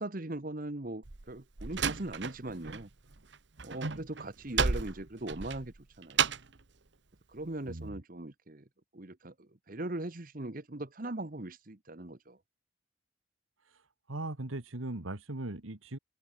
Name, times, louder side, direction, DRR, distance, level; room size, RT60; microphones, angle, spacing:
voice 1, 0.0-2.9 3.6-6.4 7.3-8.7 8.9-12.4, right 2 dB, 45° right, 1.2 m, -40 dB
Slam, 1.0-2.8 3.1-6.6, right 5 dB, 60° right, 1.2 m, -33 dB
voice 2, 7.7-8.0 14.1-16.0, right 2 dB, 85° right, 1.9 m, -39 dB
head